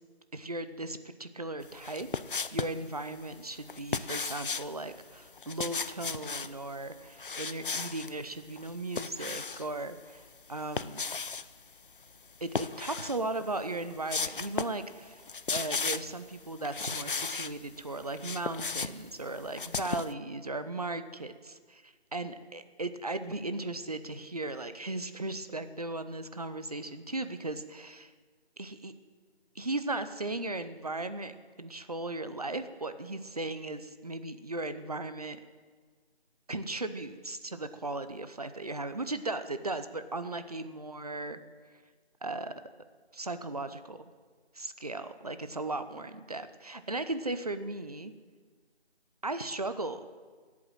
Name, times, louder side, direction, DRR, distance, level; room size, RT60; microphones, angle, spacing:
voice 1, 0.3-2.1 2.5-11.1 12.4-15.2 15.5-28.1 28.6-28.9 29.5-35.4 36.5-41.4 42.2-42.5 43.1-44.0 44.5-48.1 49.2-50.0, right 2 dB, 35° right, 11 dB, 0.7 m, -37 dB
sound 1, 1.8-2.8 3.7-4.7 5.4-6.5 7.2-8.1 8.6-9.7 10.5-11.5 12.5-13.2 13.6-13.7 14.1-14.8 15.1-16.2 16.6-17.5 18.0-20.1, left 4 dB, 55° left, 0.5 m, -35 dB
17.0 x 8.6 x 7.5 m, 1.5 s
figure-of-eight pair, 170°, 32 cm